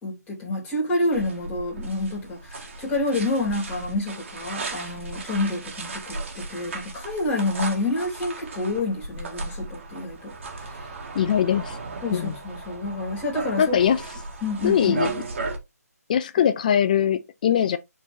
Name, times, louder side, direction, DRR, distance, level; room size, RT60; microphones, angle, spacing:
voice 1, 0.0-10.3 10.7-10.9 12.0-13.8 14.4-15.0, left 2 dB, 15° left, 3.5 m, -28 dB
sound 1, 1.1-15.6, right 3 dB, 45° right, 2.2 m, -36 dB
voice 2, 11.1-11.8 12.1-12.3 13.6-14.0 14.6-15.1 16.1-17.8, left 9 dB, 30° left, 0.4 m, -21 dB
10.5 x 4.7 x 2.8 m
figure-of-eight pair, 150°, 9 cm